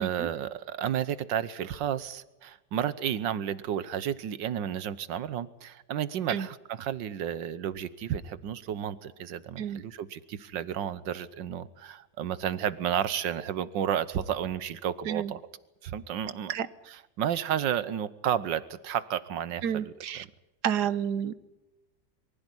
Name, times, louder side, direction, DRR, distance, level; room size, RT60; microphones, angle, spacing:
voice 1, 0.0-15.4 15.8-16.5 16.8-20.2, right 9 dB, 85° right, 16 dB, 1.7 m, -32 dB
voice 2, 19.6-20.2 20.6-21.4, right 9 dB, 65° right, 15 dB, 1.5 m, -30 dB
24.0 x 15.5 x 9.9 m, 1.0 s
omnidirectional pair, 1.9 m